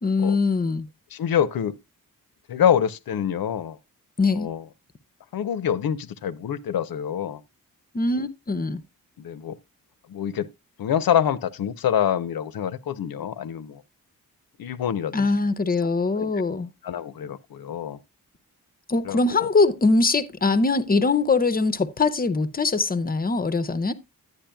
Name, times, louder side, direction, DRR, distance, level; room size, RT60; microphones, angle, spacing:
voice 1, 0.0-0.9 4.2-4.5 7.9-8.8 15.1-16.7 18.9-23.9, left 3 dB, 25° left, 0.6 m, -22 dB
voice 2, 1.1-1.8 2.5-3.8 4.3-4.6 5.3-7.4 9.2-9.6 10.1-10.5 10.8-13.8 14.6-15.3 16.2-16.3 16.8-18.0 19.0-19.5, left 9 dB, 80° left, 0.7 m, -26 dB
10.5 x 9.6 x 2.2 m
wide cardioid pair, 135°, 35 cm